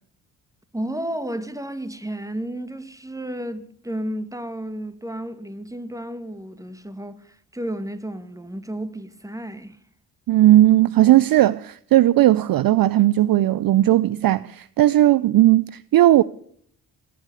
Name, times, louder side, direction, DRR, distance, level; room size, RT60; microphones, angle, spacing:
voice 1, 0.7-9.8, right 1 dB, 5° right, 2.0 m, -32 dB
voice 2, 10.3-16.2, right 14 dB, 50° right, 0.5 m, -16 dB
21.5 x 8.5 x 6.8 m
hypercardioid pair, 45°, 47 cm